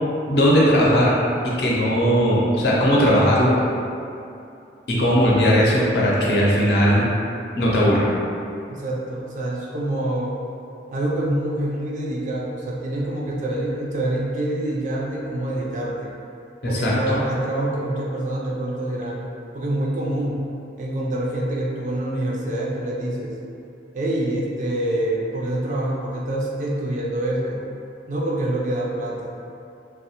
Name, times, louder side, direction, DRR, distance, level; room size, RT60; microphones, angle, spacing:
voice 1, 0.3-1.1 1.4-3.5 4.9-7.1 7.6-8.1 16.6-16.9, equal, 65° left, -5 dB, 0.6 m, -18 dB
voice 2, 8.7-10.4 10.9-16.1 16.7-19.3 19.5-20.5 20.8-23.3 23.9-27.6 28.1-29.3, right 1 dB, 45° right, -3 dB, 0.3 m, -26 dB
2.7 x 2.1 x 2.8 m, 2.6 s
head